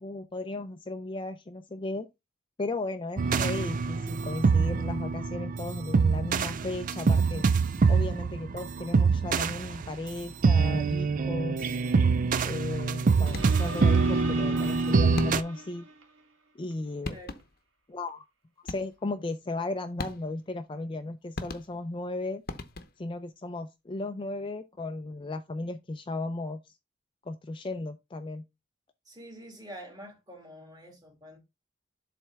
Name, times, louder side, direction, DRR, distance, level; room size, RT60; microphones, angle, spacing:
voice 1, 0.0-2.1 2.6-7.5 7.9-11.8 12.4-15.9 16.5-17.2 17.9-18.2 18.6-22.4 23.0-26.7 27.3-28.4, left 2 dB, 25° left, 0.4 m, -35 dB
sound 1, 3.2-15.4, right 4 dB, 45° right, 0.4 m, -25 dB
sound 2, 13.3-13.8 15.2-15.7 16.7-16.8 17.0-17.7 18.7-19.1 20.0-20.5 21.3-22.0 22.5-23.2, left 2 dB, 50° left, 0.8 m, -39 dB
sound 3, 13.3-16.2 16.7-16.8, right 2 dB, 80° right, 1.7 m, -39 dB
voice 2, 17.0-17.4 29.1-31.4, equal, 20° right, 2.2 m, -46 dB
7.6 x 3.3 x 4.6 m
head